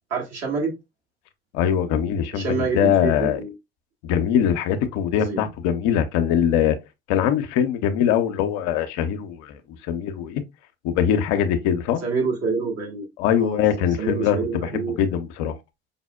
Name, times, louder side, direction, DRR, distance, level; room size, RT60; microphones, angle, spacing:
voice 1, 0.1-0.7 2.3-3.5 5.2-5.4 12.0-13.0 13.4-15.0, right 4 dB, 55° right, 1.5 m, -27 dB
voice 2, 1.5-3.4 4.0-6.8 7.1-10.4 10.8-12.0 13.2-15.6, left 9 dB, 65° left, 0.5 m, -22 dB
5.1 x 2.0 x 2.2 m
hypercardioid pair, 60°, 30 cm